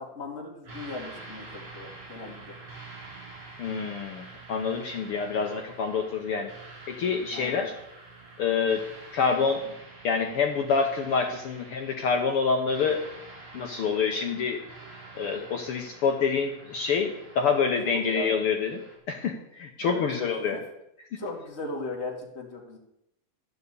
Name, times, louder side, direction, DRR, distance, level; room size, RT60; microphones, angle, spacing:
voice 1, 0.0-2.6 7.3-7.6 17.8-18.3 19.8-20.0 21.2-22.8, left 2 dB, 25° left, -1 dB, 2.1 m, -37 dB
sound 1, 0.6-19.0, right 3 dB, 50° right, 5.0 m, -47 dB
voice 2, 3.6-6.5 6.9-7.7 8.4-8.8 9.1-9.6 10.0-13.0 13.5-14.6 15.1-18.8 19.1-20.6, left 5 dB, 70° left, 3 dB, 1.3 m, -27 dB
12.0 x 5.5 x 8.1 m, 0.82 s
omnidirectional pair, 3.7 m